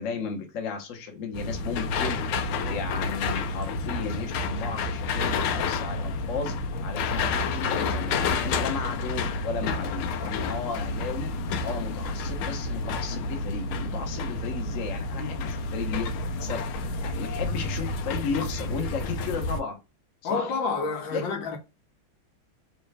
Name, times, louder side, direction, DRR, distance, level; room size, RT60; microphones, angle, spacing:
voice 1, 0.0-16.1 16.4-19.8 20.2-20.5 21.1-21.4, left 5 dB, 50° left, 1.1 m, -35 dB
sound 1, 1.3-19.6, left 3 dB, 85° left, 1.5 m, -30 dB
voice 2, 20.2-21.6, left 4 dB, 70° left, 1.5 m, -29 dB
3.3 x 3.0 x 3.2 m
omnidirectional pair, 2.2 m